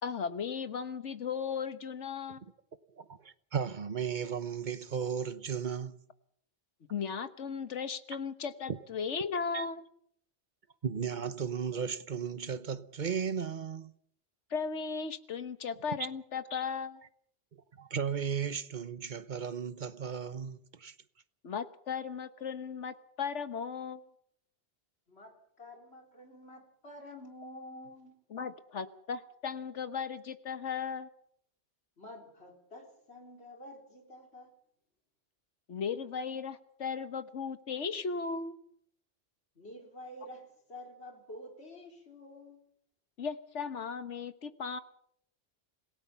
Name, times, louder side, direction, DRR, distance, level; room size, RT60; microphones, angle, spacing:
voice 1, 0.0-2.4 6.9-9.8 14.5-17.0 21.4-24.0 28.3-31.1 35.7-38.5 43.2-44.8, left 6 dB, 80° left, 1.5 m, -36 dB
voice 2, 2.9-6.0 8.7-8.8 9.5-9.7 10.8-13.9 17.5-20.9, right 7 dB, 45° right, 1.1 m, -35 dB
voice 3, 25.1-28.2 32.0-34.5 39.6-42.6, left 1 dB, 65° left, 4.0 m, -49 dB
27.0 x 17.5 x 5.8 m
omnidirectional pair, 1.2 m